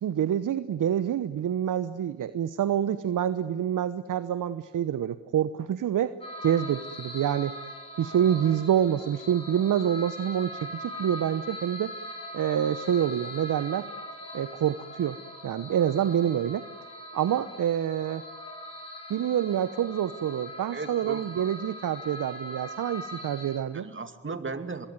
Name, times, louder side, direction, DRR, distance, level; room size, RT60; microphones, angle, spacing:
voice 1, 0.0-6.1 6.4-7.6 8.0-11.9 12.3-13.9 14.3-15.2 15.4-16.6 17.1-18.2 19.1-23.9, right 10 dB, 45° right, 14 dB, 0.9 m, -27 dB
sound 1, 6.2-23.6, left 1 dB, 15° left, 7.4 m, -41 dB
voice 2, 20.7-21.5 23.7-24.9, right 4 dB, 30° right, 8 dB, 2.4 m, -36 dB
25.5 x 21.5 x 9.5 m, 1.5 s
hypercardioid pair, 50°, 42 cm